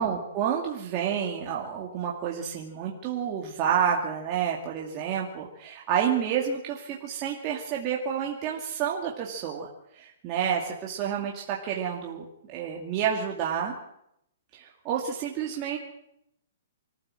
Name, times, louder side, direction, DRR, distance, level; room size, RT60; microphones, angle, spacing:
voice 1, 0.0-13.7 14.5-15.8, right 8 dB, 25° right, -2 dB, 2.4 m, -29 dB
25.5 x 14.5 x 7.7 m, 0.79 s
hypercardioid pair, 165°, 0 cm